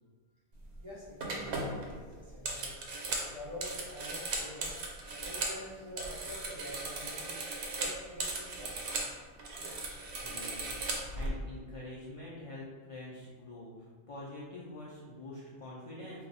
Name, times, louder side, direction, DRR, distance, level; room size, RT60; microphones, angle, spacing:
sound 1, 0.6-0.8 1.2-5.6 5.9-9.1 9.4-11.3, right 2 dB, 70° right, 0.8 m, -37 dB
voice 1, 0.8-2.7 3.2-4.7 5.2-7.4 7.7-8.8, left 1 dB, 30° right, -7 dB, 0.6 m, -46 dB
voice 2, 10.2-16.2, left 2 dB, 55° left, -6 dB, 0.3 m, -46 dB
2.7 x 2.3 x 4.0 m, 1.5 s
omnidirectional pair, 1.2 m